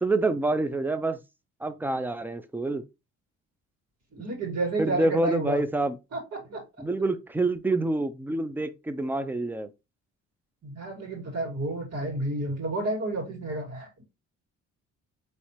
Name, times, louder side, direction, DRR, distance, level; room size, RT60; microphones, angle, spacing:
voice 1, 0.0-1.2 1.6-2.8 4.8-6.0 6.8-9.7, right 2 dB, 5° right, 0.5 m, -27 dB
voice 2, 4.1-5.6 6.1-6.6 10.6-14.0, right 2 dB, 60° right, 2.2 m, -31 dB
4.3 x 3.2 x 2.9 m
cardioid pair, 90°, 30 cm